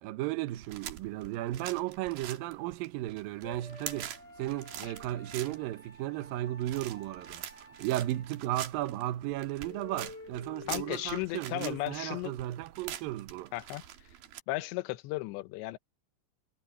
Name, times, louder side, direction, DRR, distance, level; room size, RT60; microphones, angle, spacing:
voice 1, 0.0-13.5, right 15 dB, 80° right, 2.1 m, -35 dB
sound 1, 0.5-14.4, right 11 dB, 60° right, 3.0 m, -45 dB
sound 2, 3.4-8.5 9.0-9.1 9.5-11.1, left 1 dB, 50° left, 8.9 m, -50 dB
voice 2, 10.7-12.3 13.5-13.8 14.5-15.8, left 19 dB, 80° left, 3.0 m, -35 dB
omnidirectional pair, 5.4 m